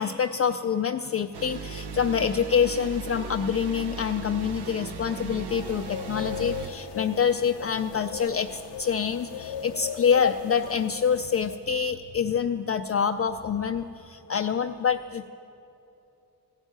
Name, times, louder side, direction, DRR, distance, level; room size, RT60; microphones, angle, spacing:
voice 1, 0.0-15.3, left 7 dB, 35° left, 7 dB, 0.5 m, -26 dB
sound 1, 1.3-6.7, right 6 dB, 75° right, 1.0 m, -37 dB
sound 2, 5.5-11.6, left 9 dB, 90° left, 0.7 m, -38 dB
15.5 x 7.3 x 9.3 m, 2.8 s
cardioid pair, 80°, 40 cm